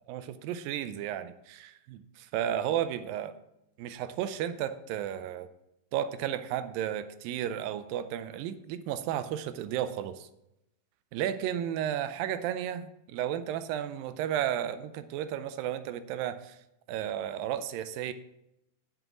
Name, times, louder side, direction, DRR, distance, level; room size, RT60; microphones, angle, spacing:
voice 1, 0.1-3.3 3.8-5.5 5.9-10.3 11.1-16.6 16.9-18.1, right 10 dB, 90° right, 12 dB, 2.4 m, -33 dB
7.8 x 7.7 x 7.2 m, 0.85 s
omnidirectional pair, 4.0 m